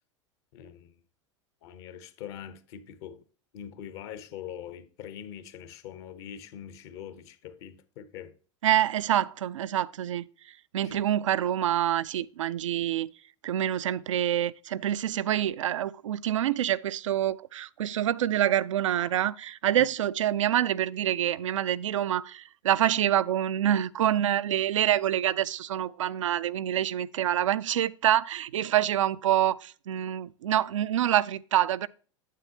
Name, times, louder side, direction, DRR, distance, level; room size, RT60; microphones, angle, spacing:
voice 1, 0.5-0.9 1.6-3.2 3.5-8.3 10.8-11.0, left 9 dB, 60° left, 1.0 m, -43 dB
voice 2, 8.6-10.3 10.7-13.1 13.4-31.9, right 11 dB, 85° right, 0.4 m, -26 dB
9.1 x 7.4 x 2.9 m
hypercardioid pair, 85°, 16 cm